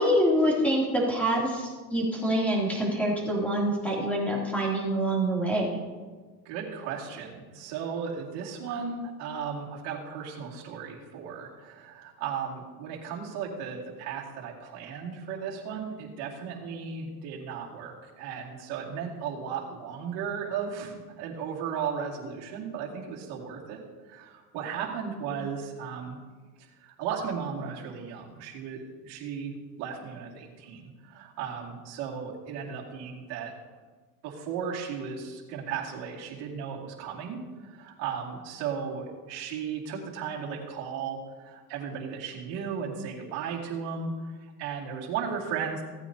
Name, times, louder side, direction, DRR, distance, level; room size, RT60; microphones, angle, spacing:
voice 1, 0.0-5.7, equal, 5° left, -4 dB, 2.9 m, -26 dB
voice 2, 6.4-23.8 24.1-26.1 26.6-33.5 34.2-44.1 44.6-45.8, right 6 dB, 55° right, -4 dB, 2.6 m, -35 dB
16.0 x 9.0 x 2.8 m, 1.4 s
supercardioid pair, 135°, 50 cm